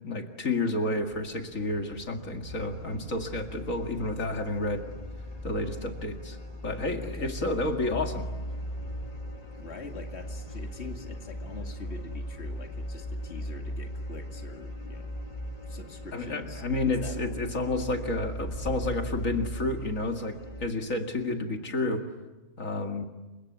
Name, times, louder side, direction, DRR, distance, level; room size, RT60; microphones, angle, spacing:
voice 1, 0.0-4.8 5.4-6.4 6.6-8.2 16.1-20.3 20.6-22.0 22.6-23.1, left 2 dB, 85° left, 4 dB, 2.6 m, -30 dB
sound 1, 1.0-19.3, equal, 20° right, 6.3 m, -50 dB
sound 2, 2.5-20.7, equal, 30° left, 2.0 m, -39 dB
Chatter / Fixed-wing aircraft airplane, 3.2-22.2, equal, 35° right, 6.5 m, -55 dB
voice 2, 7.0-7.3 9.5-15.1 15.6-16.6 17.0-17.4, left 4 dB, 55° left, 3 dB, 2.4 m, -44 dB
29.0 x 25.0 x 8.2 m, 1.1 s
omnidirectional pair, 1.4 m